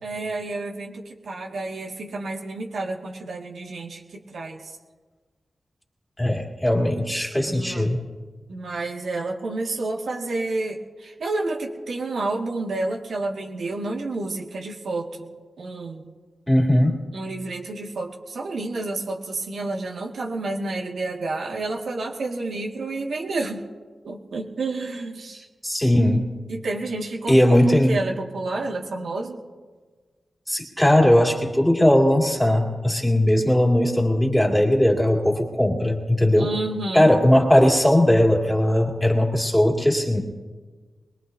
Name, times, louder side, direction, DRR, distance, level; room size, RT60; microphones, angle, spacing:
voice 1, 0.0-4.8 7.5-7.9 8.5-15.3 15.6-16.0 17.1-23.6 24.0-25.5 26.5-29.4 36.4-37.1, right 2 dB, 85° right, -1 dB, 2.0 m, -30 dB
voice 2, 6.2-8.0 16.5-17.0 25.6-26.3 27.3-28.0 30.5-36.5 36.9-40.2, left 1 dB, 5° left, 0 dB, 2.3 m, -19 dB
23.0 x 21.0 x 2.8 m, 1.4 s
wide cardioid pair, 105°, 0 cm